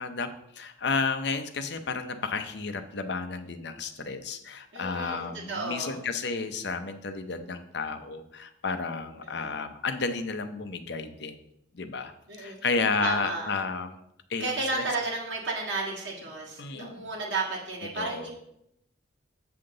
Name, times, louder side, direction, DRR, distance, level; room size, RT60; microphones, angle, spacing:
voice 1, 0.0-11.4 11.7-12.1 12.4-14.0 14.3-14.9 16.6-17.1 17.9-18.3, left 4 dB, 60° left, 9 dB, 0.7 m, -32 dB
voice 2, 4.7-6.0 9.4-9.5 12.3-12.6 13.0-13.5 14.4-18.3, right 3 dB, 75° right, -4 dB, 1.8 m, -33 dB
7.8 x 5.8 x 3.8 m, 0.78 s
head